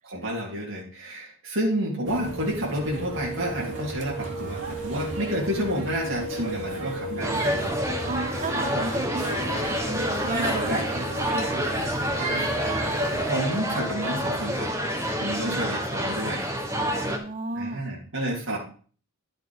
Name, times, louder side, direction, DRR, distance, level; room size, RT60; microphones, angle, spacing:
voice 1, 0.0-7.5 13.1-14.9 15.2-16.4 17.5-18.6, equal, 60° right, -4 dB, 2.9 m, -30 dB
sound 1, 2.1-13.2, right 1 dB, 80° right, 2.7 m, -34 dB
sound 2, 2.2-14.2, right 2 dB, 25° left, 2.0 m, -37 dB
sound 3, 7.2-17.2, equal, 10° right, 1.3 m, -28 dB
voice 2, 8.1-12.3 15.4-15.8 16.6-17.8, right 3 dB, 35° right, 12 dB, 0.5 m, -35 dB
11.5 x 6.4 x 5.0 m, 0.42 s
head